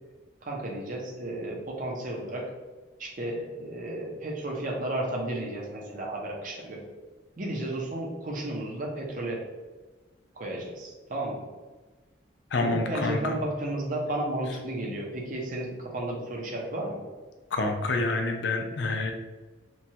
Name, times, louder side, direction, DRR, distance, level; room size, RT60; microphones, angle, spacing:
voice 1, 0.4-2.5 3.0-6.8 7.4-9.4 10.3-11.5 12.6-17.0, right 1 dB, 45° right, -1 dB, 0.6 m, -33 dB
voice 2, 12.5-13.4 14.9-15.0 17.5-19.1, left 3 dB, 65° left, 4 dB, 0.4 m, -28 dB
3.0 x 2.3 x 2.7 m, 1.3 s
head